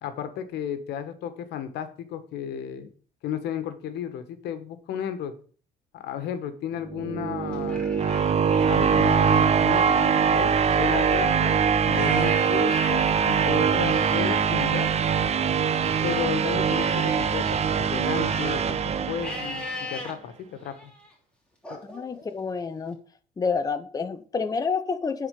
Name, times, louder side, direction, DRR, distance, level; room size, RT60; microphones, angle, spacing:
voice 1, 0.0-2.9 3.2-5.4 5.9-7.8 8.7-14.9 16.0-20.9, left 9 dB, 80° left, 9 dB, 1.4 m, -33 dB
sound 1, 6.8-19.9, right 7 dB, 40° right, 0.8 m, -23 dB
Livestock farm animals working animals, 7.5-9.1 9.6-16.1 16.6-18.7 19.2-20.1 20.6-21.1 21.6-22.7, left 1 dB, 5° left, 2.9 m, -39 dB
voice 2, 21.9-23.0 23.4-25.3, left 5 dB, 20° left, 9 dB, 0.7 m, -28 dB
9.9 x 4.5 x 6.6 m, 0.43 s
cardioid pair, 110°, 17 cm